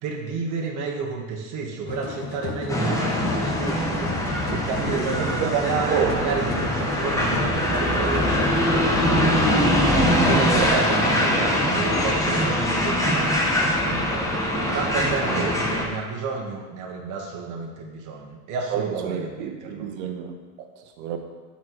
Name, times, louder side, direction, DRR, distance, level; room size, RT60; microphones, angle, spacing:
voice 1, 0.0-9.4 9.9-13.5 13.8-19.9, right 4 dB, 45° right, 0 dB, 1.2 m, -31 dB
sound 1, 1.9-9.4, left 6 dB, 40° left, 0.7 m, -33 dB
sound 2, 2.7-15.8, left 1 dB, 10° left, 1.1 m, -22 dB
voice 2, 4.5-6.4 10.3-10.7 15.3-15.5 18.7-21.2, right 8 dB, 75° right, 5 dB, 1.0 m, -29 dB
7.5 x 4.2 x 4.6 m, 1.4 s
supercardioid pair, 120°, 42 cm